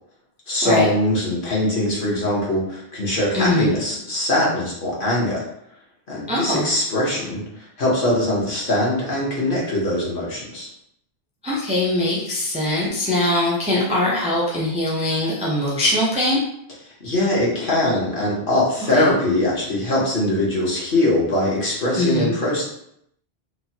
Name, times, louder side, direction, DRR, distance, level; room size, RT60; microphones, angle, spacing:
voice 1, 0.5-5.4 6.1-7.4 7.8-10.7 17.0-22.6, left 1 dB, 60° left, -5 dB, 1.0 m, -22 dB
voice 2, 3.3-3.7 6.3-6.7 11.4-16.4 18.9-19.2 22.0-22.3, left 1 dB, 10° right, -5 dB, 0.4 m, -22 dB
3.0 x 2.1 x 2.7 m, 0.74 s
omnidirectional pair, 1.0 m